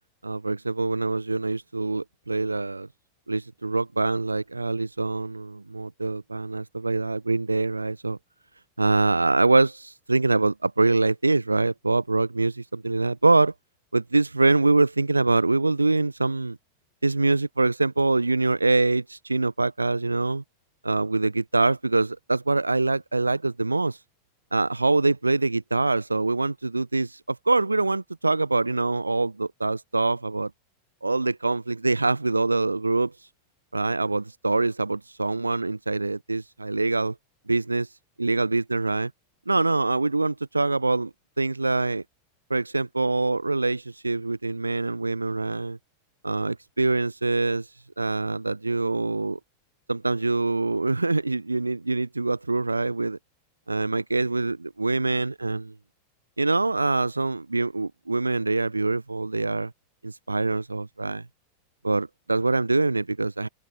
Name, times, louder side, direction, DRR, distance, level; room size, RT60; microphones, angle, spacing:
voice 1, 0.2-2.9 3.3-8.2 8.8-13.5 13.9-16.6 17.0-20.4 20.8-24.0 24.5-30.5 31.0-33.1 33.7-37.1 37.5-37.9 38.2-39.1 39.5-42.0 42.5-45.8 46.2-47.7 48.0-49.4 49.9-53.2 53.7-55.7 56.4-59.7 60.0-61.2 61.8-63.5, right 3 dB, 80° right, 1.1 m, -24 dB
open air
figure-of-eight pair, 90°, 0 cm